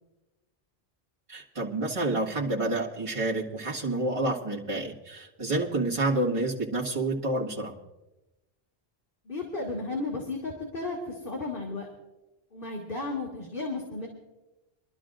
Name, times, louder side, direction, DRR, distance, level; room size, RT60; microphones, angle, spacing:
voice 1, 1.3-7.8, right 2 dB, 30° right, -4 dB, 1.9 m, -29 dB
voice 2, 9.2-11.9 12.5-14.1, left 3 dB, 55° left, -3 dB, 2.3 m, -34 dB
25.5 x 12.5 x 2.5 m, 1.0 s
omnidirectional pair, 1.0 m